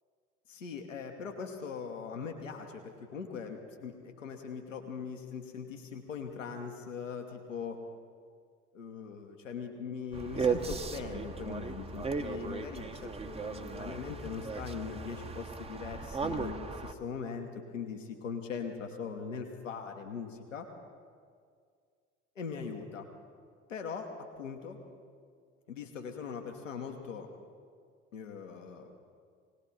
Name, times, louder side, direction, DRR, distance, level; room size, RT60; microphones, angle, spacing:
voice 1, 0.5-7.8 8.7-20.7 22.3-23.1 23.7-24.1 24.4-24.8 25.7-27.3 28.1-28.9, left 6 dB, 80° left, 3 dB, 1.2 m, -41 dB
sound 1, 10.1-16.9, right 4 dB, 15° right, 0.8 m, -36 dB
18.5 x 18.0 x 4.2 m, 2.1 s
figure-of-eight pair, 60°, 37 cm